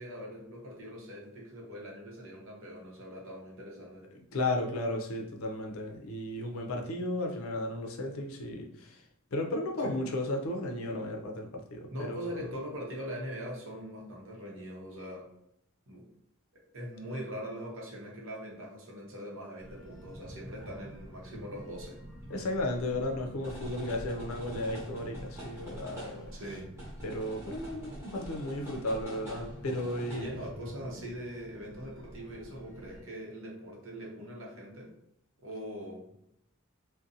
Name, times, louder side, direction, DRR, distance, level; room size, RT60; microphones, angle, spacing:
voice 1, 0.0-4.1 9.8-10.0 11.9-15.3 15.9-16.1 16.7-22.0 26.3-26.7 30.1-34.9 35.4-36.1, equal, 65° right, -2 dB, 0.8 m, -42 dB
voice 2, 4.1-9.0 9.3-12.4 22.3-26.3 27.0-30.3, left 1 dB, 70° left, 2 dB, 0.5 m, -34 dB
sound 1, 19.6-33.0, right 1 dB, 15° right, 0.9 m, -45 dB
2.5 x 2.1 x 2.6 m, 0.76 s
head